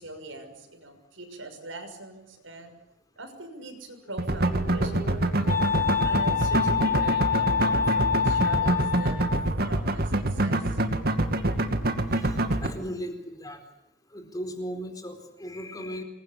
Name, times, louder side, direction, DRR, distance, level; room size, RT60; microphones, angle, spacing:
voice 1, 0.0-2.7 3.2-5.4 6.0-9.3 9.6-10.8, right 2 dB, 75° right, 6 dB, 6.3 m, -42 dB
Wind instrument woodwind instrument, 4.1-9.6, left 6 dB, 45° left, 3.3 m, -27 dB
sound 1, 4.2-12.7, right 1 dB, 50° right, 2.4 m, -25 dB
voice 2, 12.2-13.6 14.1-16.0, equal, 20° left, 6 dB, 4.3 m, -37 dB
27.0 x 22.5 x 8.7 m, 0.83 s
head